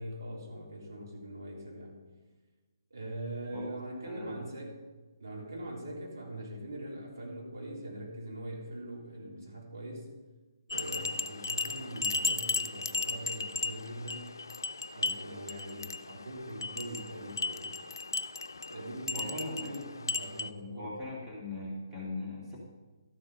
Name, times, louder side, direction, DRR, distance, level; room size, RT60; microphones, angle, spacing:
voice 1, 0.0-1.9 2.9-4.8 5.2-10.1 10.7-14.4 14.9-17.8 18.7-19.8 20.1-21.0, right 1 dB, 65° right, -2 dB, 3.4 m, -42 dB
voice 2, 3.5-4.5 19.1-22.6, left 2 dB, 10° right, -6 dB, 2.5 m, -41 dB
sound 1, 10.7-20.5, left 3 dB, 65° left, 0.5 m, -36 dB
13.0 x 7.8 x 5.5 m, 1.2 s
figure-of-eight pair, 135°, 2 cm